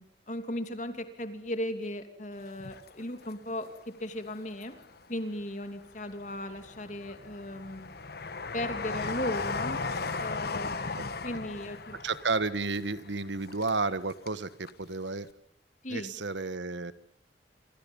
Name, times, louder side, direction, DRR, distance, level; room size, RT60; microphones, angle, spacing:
voice 1, 0.0-4.8 5.1-7.9 8.5-9.8 10.2-12.0 15.8-16.1, left 1 dB, 45° left, 8 dB, 2.8 m, -37 dB
Train, 2.5-3.7 4.2-5.1 5.6-14.4 14.7-14.8, left 4 dB, 60° left, 1.4 m, -37 dB
voice 2, 12.0-15.3 15.9-16.9, right 3 dB, 85° right, 14 dB, 1.5 m, -32 dB
27.5 x 27.0 x 5.5 m, 0.66 s
head